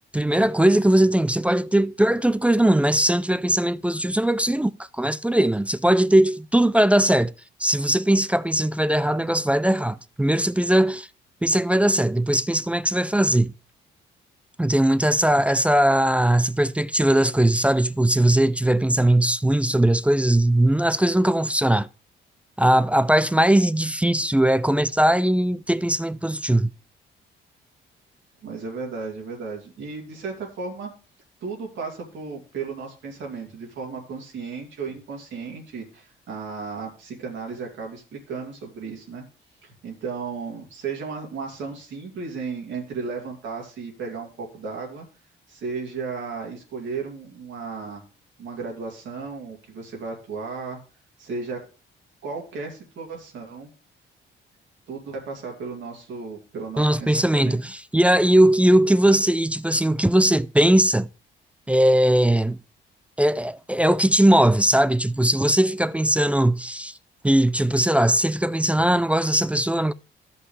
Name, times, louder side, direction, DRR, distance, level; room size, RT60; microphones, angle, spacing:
voice 1, 0.1-7.3 7.6-11.1 11.4-13.5 14.6-21.9 22.6-26.7 56.8-61.1 61.7-62.6 63.2-66.9 67.2-69.9, right 1 dB, 5° right, 0.3 m, -20 dB
voice 2, 28.4-30.9 31.4-39.2 39.6-45.1 45.5-48.0 48.4-50.8 51.2-51.6 52.2-53.7 54.9-57.6, right 4 dB, 75° right, 2.5 m, -34 dB
13.5 x 5.5 x 3.3 m
cardioid pair, 90°, 20 cm